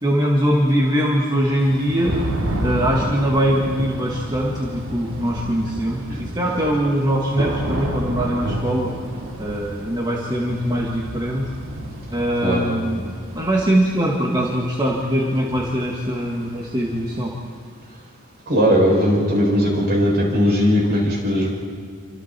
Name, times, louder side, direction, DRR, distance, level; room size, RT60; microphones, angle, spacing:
voice 1, 0.0-2.2 2.6-9.0 9.4-11.5 12.1-17.3, equal, 20° right, -2 dB, 2.1 m, -22 dB
Thunder / Rain, 1.6-17.4, right 1 dB, 65° right, 2.9 m, -31 dB
voice 2, 18.5-21.5, equal, 45° right, -3 dB, 7.4 m, -18 dB
28.5 x 25.5 x 4.5 m, 2.2 s
head